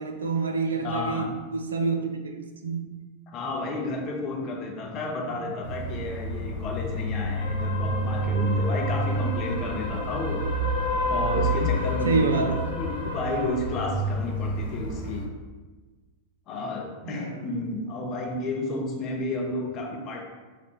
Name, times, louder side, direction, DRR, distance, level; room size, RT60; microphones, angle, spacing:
voice 1, 0.0-3.0 5.2-5.5 11.4-12.6 17.0-17.5, right 4 dB, 70° right, 5 dB, 0.4 m, -28 dB
voice 2, 0.8-1.3 3.3-10.4 11.1-15.3 16.5-20.2, left 2 dB, 35° left, 1 dB, 0.6 m, -32 dB
sound 1, 5.6-15.2, equal, 75° left, 0.9 m, -28 dB
4.0 x 2.1 x 4.2 m, 1.3 s
figure-of-eight pair, 90°, 0 cm